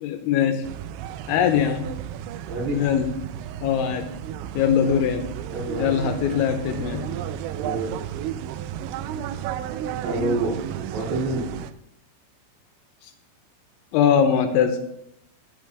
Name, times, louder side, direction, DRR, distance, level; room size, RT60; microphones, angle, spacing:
voice 1, 0.0-0.7 1.3-1.9 2.7-3.1 3.6-4.1 4.6-5.3 5.8-7.1 13.9-14.8, left 8 dB, 85° left, 6 dB, 2.8 m, -21 dB
sound 1, 0.6-11.7, right 10 dB, 90° right, 2.6 m, -33 dB
voice 2, 2.5-2.8 4.8-5.0 5.5-6.0 7.6-7.9 10.0-10.6 10.9-11.5, right 2 dB, 55° right, -3 dB, 4.4 m, -27 dB
17.0 x 8.3 x 2.3 m, 0.78 s
omnidirectional pair, 5.8 m